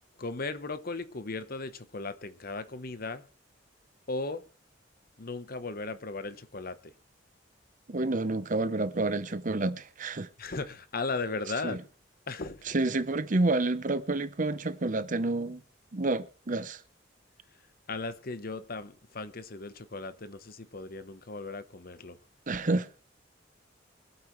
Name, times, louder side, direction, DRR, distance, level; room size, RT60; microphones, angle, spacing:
voice 1, 0.2-3.3 4.1-4.4 5.2-6.8 10.4-11.8 12.3-12.7 17.9-22.2, left 3 dB, 50° left, 1.0 m, -36 dB
voice 2, 7.9-10.3 11.6-11.8 12.7-15.6 15.9-16.8 22.5-22.9, right 2 dB, 45° right, 0.8 m, -29 dB
25.0 x 8.5 x 3.2 m
head